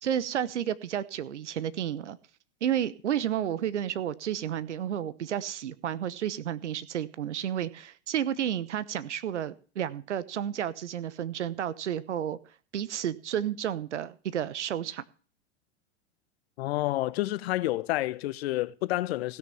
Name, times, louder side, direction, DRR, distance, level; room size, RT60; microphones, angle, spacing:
voice 1, 0.0-2.2 2.6-12.4 12.7-15.0, right 10 dB, 80° right, 0.9 m, -31 dB
voice 2, 16.6-19.4, left 17 dB, 60° left, 0.9 m, -29 dB
16.5 x 6.5 x 7.0 m
hypercardioid pair, 100°, 35 cm